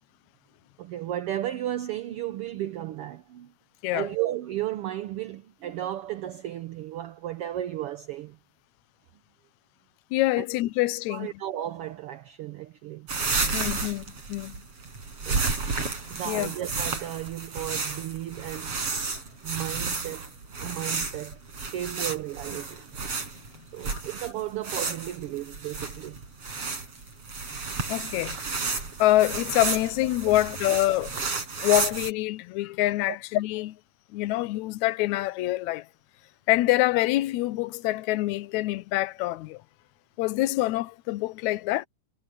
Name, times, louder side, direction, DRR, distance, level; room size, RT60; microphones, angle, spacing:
voice 1, 0.8-3.5 3.9-8.4 10.4-10.5 11.1-13.1 15.2-15.4 16.1-18.8 19.4-20.2 20.6-23.0 23.7-26.2 26.5-26.7 26.9-27.0 30.4-30.5 33.1-33.2, right 13 dB, 75° right, 1.3 m, -34 dB
voice 2, 10.1-11.3 13.5-14.6 16.3-16.5 23.9-24.0 27.9-28.4 29.0-31.2 31.6-33.8 34.1-35.9 36.5-39.6 40.2-41.9, left 16 dB, 75° left, 2.0 m, -25 dB
sound 1, 13.1-32.1, right 4 dB, 50° right, 5.8 m, -32 dB
omnidirectional pair, 3.5 m